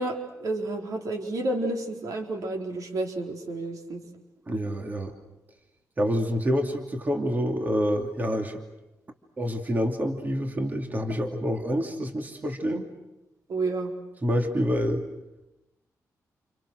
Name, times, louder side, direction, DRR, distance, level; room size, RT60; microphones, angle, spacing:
voice 1, 0.0-4.0 13.5-13.9, right 2 dB, 70° right, 2 dB, 4.3 m, -30 dB
voice 2, 4.5-5.1 6.0-8.6 9.4-12.9 14.2-15.0, equal, 30° right, 3 dB, 2.9 m, -27 dB
29.5 x 29.0 x 6.5 m, 0.99 s
cardioid pair, 110°, 6 cm